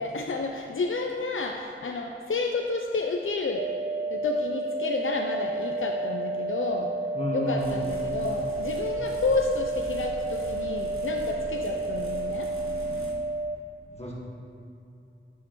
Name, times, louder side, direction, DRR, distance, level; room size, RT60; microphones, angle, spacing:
voice 1, 0.0-3.7 4.1-6.9 7.3-12.5, left 3 dB, 75° left, 2 dB, 0.5 m, -30 dB
sound 1, 3.6-13.6, right 2 dB, 45° right, 0.5 m, -31 dB
voice 2, 7.1-7.8 13.9-14.1, left 1 dB, 30° left, -4 dB, 1.6 m, -31 dB
sound 2, 7.6-13.1, equal, 90° right, 1.1 m, -42 dB
10.5 x 6.3 x 3.1 m, 2.6 s
wide cardioid pair, 45°, 21 cm